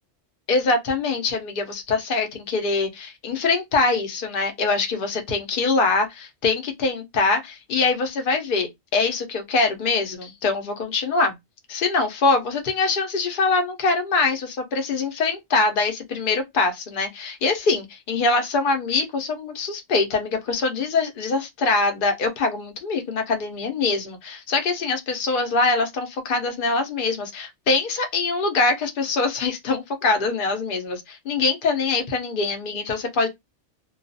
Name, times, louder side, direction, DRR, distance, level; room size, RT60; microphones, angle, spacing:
voice 1, 0.5-11.3 11.7-33.3, left 3 dB, 50° left, 0.8 m, -23 dB
2.3 x 2.3 x 2.6 m
omnidirectional pair, 1.2 m